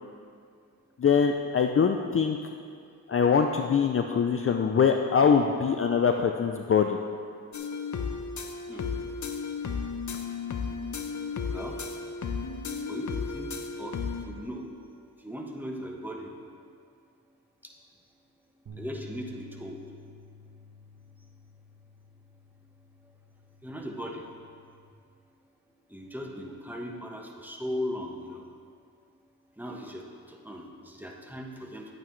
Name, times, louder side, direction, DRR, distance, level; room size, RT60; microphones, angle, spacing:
voice 1, 1.0-2.4 3.1-7.0, left 6 dB, 40° left, 4 dB, 0.5 m, -23 dB
sound 1, 7.5-14.2, left 5 dB, 55° left, 0.9 m, -34 dB
voice 2, 11.5-11.8 12.9-13.5 13.8-13.9 14.3-14.6 15.2-16.3 18.8-19.8 23.6-24.2 25.9-28.4 29.6-31.8, equal, 5° right, 0 dB, 1.2 m, -38 dB
sound 2, 18.7-24.9, left 2 dB, 60° right, 1.5 m, -50 dB
11.0 x 9.0 x 3.2 m, 2.3 s
cardioid pair, 60°, 36 cm